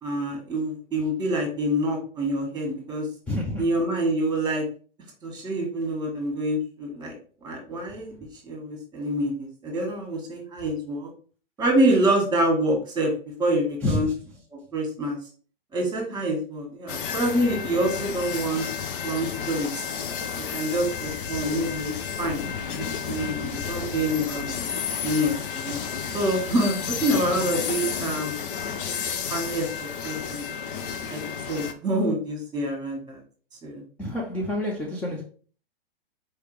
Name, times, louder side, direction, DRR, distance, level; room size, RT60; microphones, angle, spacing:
voice 1, 0.0-3.1 3.6-4.6 5.2-7.1 7.4-8.1 8.4-11.1 11.6-13.1 13.4-14.1 14.5-15.2 15.7-18.6 19.0-19.8 20.5-22.4 22.7-24.5 25.0-28.5 29.3-30.4 31.1-33.2 33.6-33.8, right 1 dB, 15° right, 1.7 m, -26 dB
voice 2, 3.3-3.7 13.8-14.1 34.0-35.2, left 1 dB, 5° left, 0.5 m, -28 dB
sound 1, 16.9-31.7, left 7 dB, 60° left, 0.7 m, -32 dB
4.6 x 3.3 x 3.3 m
hypercardioid pair, 120°, 30 cm